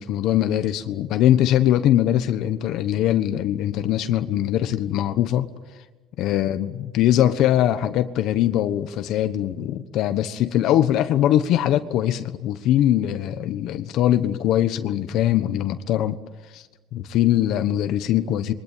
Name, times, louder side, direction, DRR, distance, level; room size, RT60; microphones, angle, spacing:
voice 1, 0.0-5.5 6.2-16.2 16.5-16.7 16.9-18.5, left 12 dB, 60° left, 1.3 m, -21 dB
28.0 x 23.0 x 9.2 m
cardioid pair, 140°, 0 cm